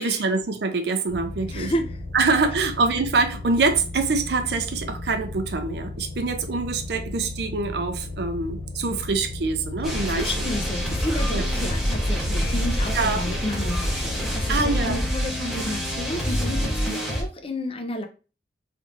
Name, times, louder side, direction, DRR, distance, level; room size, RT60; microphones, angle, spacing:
voice 1, 0.0-1.7 2.1-10.3 11.3-11.4 12.9-13.2 14.5-15.0, right 3 dB, 65° right, 0.5 m, -25 dB
sound 1, 1.1-16.7, left 2 dB, 70° left, 1.7 m, -35 dB
voice 2, 1.5-2.0 10.1-18.1, left 1 dB, 30° left, 0.5 m, -31 dB
sound 2, 9.8-17.2, equal, ahead, 0.8 m, -26 dB
3.2 x 3.1 x 2.4 m
head